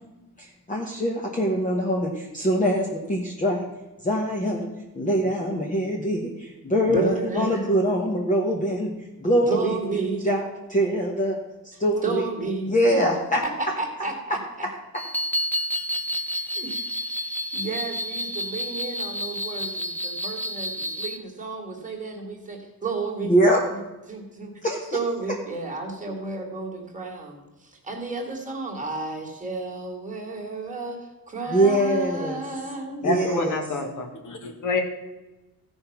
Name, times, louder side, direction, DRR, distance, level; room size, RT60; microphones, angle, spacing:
voice 1, 0.4-3.6 4.0-9.8 10.2-11.4 11.6-12.3 12.7-13.4 23.2-23.6 24.6-25.0 31.5-32.4 33.0-33.6, equal, 20° left, -1 dB, 1.3 m, -23 dB
voice 2, 6.9-7.7 9.5-10.3 12.0-12.7 13.6-14.4 16.5-16.8 17.5-23.3 24.1-24.5 24.9-33.1, right 3 dB, 20° right, 0 dB, 2.1 m, -32 dB
sound 1, 15.0-21.2, equal, 5° left, 0.7 m, -30 dB
voice 3, 33.0-34.8, left 2 dB, 55° left, 4 dB, 1.8 m, -27 dB
15.5 x 5.4 x 5.9 m, 1.1 s
wide cardioid pair, 155°, 36 cm